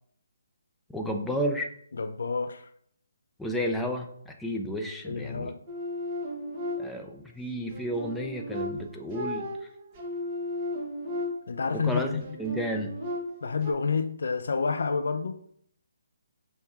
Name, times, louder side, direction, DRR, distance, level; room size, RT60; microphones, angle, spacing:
voice 1, 0.9-1.7 3.4-5.5 6.8-9.7 11.7-13.0, equal, 5° left, 0.5 m, -32 dB
voice 2, 2.0-2.6 5.0-5.6 11.5-12.2 13.4-15.4, left 5 dB, 65° left, 0.3 m, -29 dB
sound 1, 5.7-7.2 7.7-11.7 12.2-13.7, left 1 dB, 25° right, 0.9 m, -35 dB
5.9 x 2.2 x 3.6 m
figure-of-eight pair, 140°, 0 cm